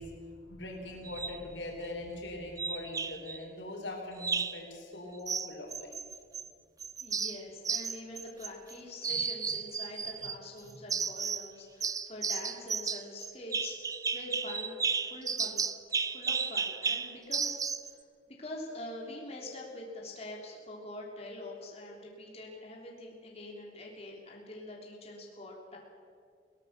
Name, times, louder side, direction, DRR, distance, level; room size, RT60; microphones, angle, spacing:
voice 1, 0.0-5.9 9.1-9.2, left 1 dB, 90° left, 1 dB, 4.2 m, -42 dB
sound 1, 1.0-1.4 2.6-3.4 4.2-4.6 5.3-6.5 6.8-8.7 9.0-10.4 10.9-11.5 11.8-17.9, right 5 dB, 20° right, 0.5 m, -33 dB
voice 2, 7.0-15.6 16.0-18.0 18.3-25.8, left 1 dB, 35° left, -2 dB, 3.3 m, -45 dB
21.5 x 18.0 x 6.7 m, 2.2 s
head